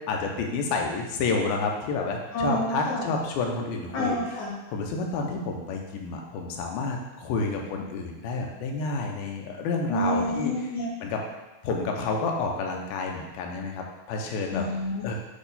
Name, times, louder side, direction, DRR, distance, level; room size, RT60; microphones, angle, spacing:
voice 1, 0.1-4.2 4.7-10.5 11.0-11.2 11.6-14.7 15.0-15.2, left 4 dB, 85° left, 1 dB, 2.6 m, -29 dB
voice 2, 2.3-3.1 3.9-4.5 9.9-10.9 14.5-15.2, equal, 60° left, -6 dB, 2.7 m, -28 dB
8.3 x 3.0 x 4.1 m, 1.1 s
omnidirectional pair, 4.2 m